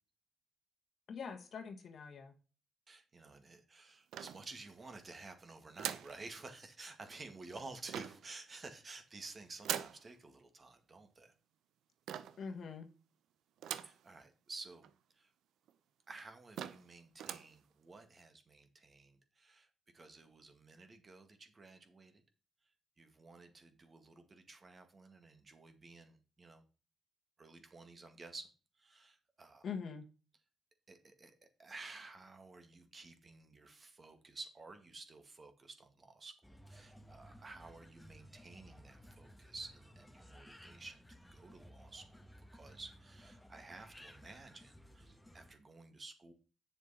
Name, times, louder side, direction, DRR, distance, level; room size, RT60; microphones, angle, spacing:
voice 1, 1.1-2.3 12.4-12.9 29.6-30.1, left 6 dB, 55° left, 5 dB, 1.5 m, -44 dB
voice 2, 2.9-11.3 13.8-14.8 15.1-15.3 16.1-19.7 19.9-22.2 23.0-26.6 27.4-28.5 28.8-29.7 30.9-31.3 31.6-41.0 41.3-42.2 42.5-46.3, right 3 dB, 35° right, 7 dB, 1.8 m, -53 dB
sound 1, 4.1-4.9 5.8-6.2 7.9-8.3 9.6-10.0 12.1-12.5 13.6-14.0 14.5-14.6 14.8-14.9 15.7-15.8 16.2-16.3 16.6-16.9 17.2-17.5, right 10 dB, 75° right, 0.6 m, -42 dB
sound 2, 36.4-45.5, equal, 5° left, 1.2 m, -58 dB
8.2 x 6.7 x 4.2 m, 0.34 s
cardioid pair, 90°, 0 cm